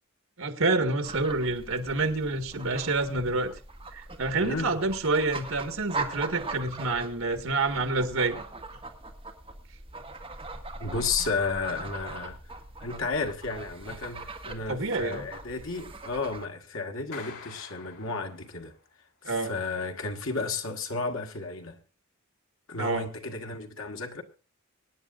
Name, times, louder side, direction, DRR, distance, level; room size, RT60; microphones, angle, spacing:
voice 1, 0.4-3.5 3.9-8.4 14.7-15.3 19.2-19.5 22.8-23.1, right 3 dB, 70° right, 1.8 m, -28 dB
sound 1, 1.0-16.4, right 3 dB, 25° right, 1.9 m, -41 dB
voice 2, 4.4-4.8 10.8-12.4 12.8-18.7 19.3-21.8 22.7-24.2, left 4 dB, 70° left, 1.7 m, -33 dB
Clapping, 17.1-18.9, left 5 dB, 85° left, 4.1 m, -46 dB
24.5 x 9.9 x 2.5 m
head